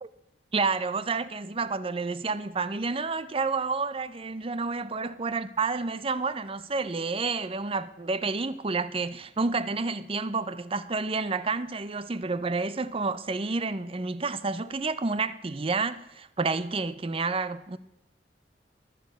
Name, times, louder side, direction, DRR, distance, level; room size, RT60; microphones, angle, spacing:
voice 1, 0.5-17.8, right 4 dB, 30° right, 0.6 m, -29 dB
23.0 x 8.6 x 6.2 m
head